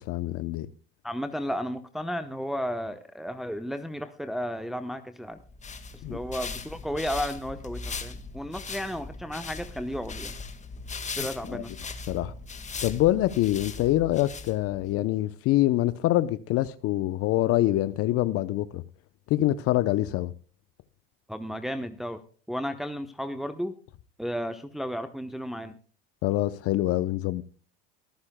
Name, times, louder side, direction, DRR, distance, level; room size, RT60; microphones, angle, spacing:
voice 1, 0.1-0.7 6.0-6.2 11.5-11.6 12.1-12.3 12.8-18.8 19.3-20.3 26.2-27.4, left 15 dB, 55° left, 0.7 m, -25 dB
voice 2, 1.0-5.4 5.9-10.3 11.2-11.8 21.3-22.2 22.5-23.7 24.2-25.7, equal, ahead, 0.9 m, -33 dB
sound 1, 5.4-14.9, left 4 dB, 25° left, 1.7 m, -39 dB
23.5 x 9.7 x 2.2 m
hypercardioid pair, 85°, 29 cm